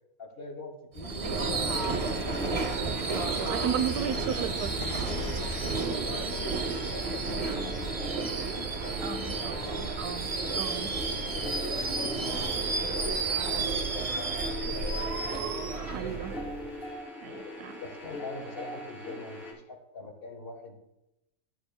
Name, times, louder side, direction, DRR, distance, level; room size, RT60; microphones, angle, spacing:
voice 1, 0.2-2.2 5.5-9.8 10.4-12.5 12.8-15.1 17.4-17.5 17.8-20.8, left 3 dB, 40° left, 3 dB, 1.5 m, -44 dB
Subway metro underground / Screech, 1.0-16.9, right 4 dB, 50° right, 0.4 m, -32 dB
sound 1, 1.7-19.5, left 2 dB, ahead, 2.9 m, -41 dB
sound 2, 1.8-6.6, left 2 dB, 70° left, 2.2 m, -43 dB
voice 2, 3.1-4.8 7.5-7.6 9.0-10.9 15.9-16.4 17.2-17.8, right 8 dB, 85° right, 12 dB, 1.1 m, -35 dB
12.5 x 9.4 x 2.2 m, 0.90 s
omnidirectional pair, 1.6 m